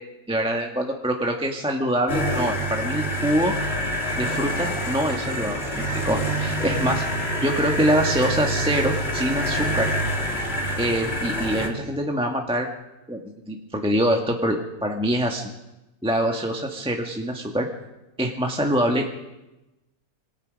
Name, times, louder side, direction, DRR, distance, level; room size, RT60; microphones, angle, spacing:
voice 1, 0.3-3.5 4.2-7.0 7.4-9.9 10.8-12.7 13.1-13.2 13.5-15.5 16.0-17.7 18.2-19.0, equal, 5° right, 1 dB, 1.3 m, -24 dB
sound 1, 2.1-11.7, equal, 30° left, 2.8 m, -26 dB
27.0 x 19.0 x 5.2 m, 1.0 s
omnidirectional pair, 2.0 m